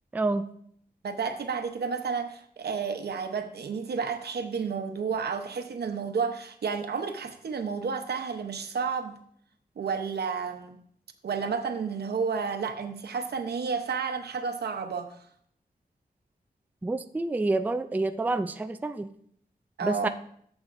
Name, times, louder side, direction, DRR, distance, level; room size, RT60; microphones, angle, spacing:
voice 1, 0.1-0.5 16.8-19.1 19.8-20.1, right 2 dB, 10° right, 10 dB, 0.3 m, -28 dB
voice 2, 1.0-9.1 9.8-10.7 11.2-15.1 19.8-20.1, right 5 dB, 85° right, 6 dB, 0.9 m, -31 dB
13.0 x 7.2 x 2.6 m, 0.65 s
wide cardioid pair, 160°, 16 cm